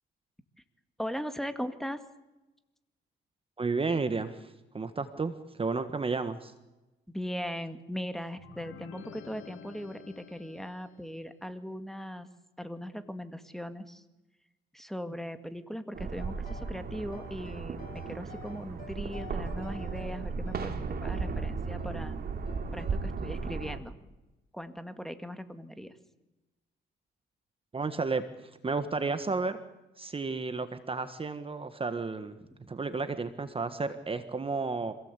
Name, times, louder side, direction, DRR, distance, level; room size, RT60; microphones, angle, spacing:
voice 1, 1.0-2.0 7.1-12.3 12.6-14.0 14.7-22.2 22.7-23.9 24.5-26.0 32.6-32.7, equal, ahead, 9 dB, 2.0 m, -39 dB
voice 2, 3.6-6.5 27.7-29.6 30.0-32.4 32.7-34.9, right 4 dB, 30° right, 10 dB, 1.5 m, -32 dB
sound 1, 8.4-11.2, left 8 dB, 80° left, 2.2 m, -50 dB
sound 2, 15.9-23.8, right 4 dB, 50° right, 2.8 m, -35 dB
sound 3, 16.2-16.8 17.1-21.4 21.8-22.0 22.5-23.0, left 5 dB, 45° left, 5.5 m, -51 dB
26.5 x 17.5 x 8.4 m, 1.0 s
cardioid pair, 90°, 20 cm